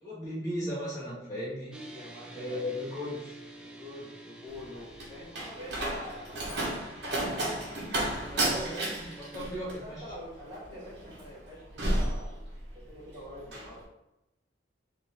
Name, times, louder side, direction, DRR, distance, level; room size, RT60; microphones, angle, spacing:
voice 1, 0.0-1.8 2.3-3.3 8.2-10.0, equal, 20° left, -7 dB, 1.4 m, -36 dB
voice 2, 1.5-2.8 3.6-6.9 9.8-13.8, left 1 dB, 30° right, -6 dB, 1.3 m, -46 dB
sound 1, 1.7-9.4, right 1 dB, 5° right, 0.4 m, -50 dB
Slam, 4.5-12.9 13.2-13.7, right 1 dB, 65° right, 1.0 m, -33 dB
4.3 x 2.6 x 3.4 m, 0.92 s
head